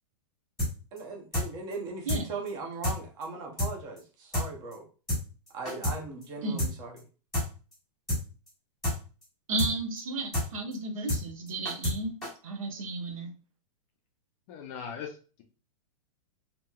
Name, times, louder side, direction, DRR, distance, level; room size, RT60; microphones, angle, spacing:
sound 1, 0.6-0.7 1.0-1.1 1.3-1.5 1.7-1.8 2.1-2.2 2.5-2.6 2.8-3.0 3.2-3.3 3.6-3.7 4.0-4.1 4.3-4.5 4.7-4.8 5.1-5.2 5.5-6.0 6.2-6.3 6.6-6.7 7.0-7.1 7.3-7.5 7.7-7.8 8.1-8.2 8.5-8.6 8.8-9.0 9.2-9.3 9.6-9.7 10.0-10.1 10.3-10.5 10.7-10.8 11.1-11.2 11.5-12.0 12.2-12.3, left 1 dB, ahead, 1.4 m, -28 dB
voice 1, 0.9-4.8 5.5-7.0, right 3 dB, 20° right, 0.6 m, -39 dB
voice 2, 9.5-12.2 12.4-13.3, right 2 dB, 70° right, 0.9 m, -33 dB
voice 3, 14.5-15.4, left 7 dB, 25° left, 0.4 m, -40 dB
2.9 x 2.8 x 2.3 m
hypercardioid pair, 160°, 18 cm